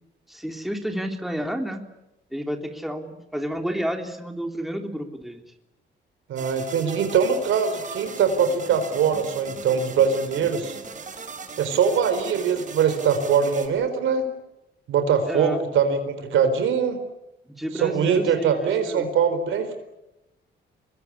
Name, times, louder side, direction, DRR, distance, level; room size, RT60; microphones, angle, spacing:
voice 1, 0.3-1.8 2.3-5.4 15.3-15.6 17.6-19.1, equal, ahead, 4 dB, 3.4 m, -30 dB
voice 2, 6.3-10.8 11.6-14.2 14.9-17.0 17.7-19.8, right 7 dB, 80° right, 8 dB, 4.5 m, -22 dB
sound 1, 6.4-13.7, right 4 dB, 40° right, 4.9 m, -39 dB
24.0 x 22.0 x 9.9 m, 0.92 s
cardioid pair, 90°, 20 cm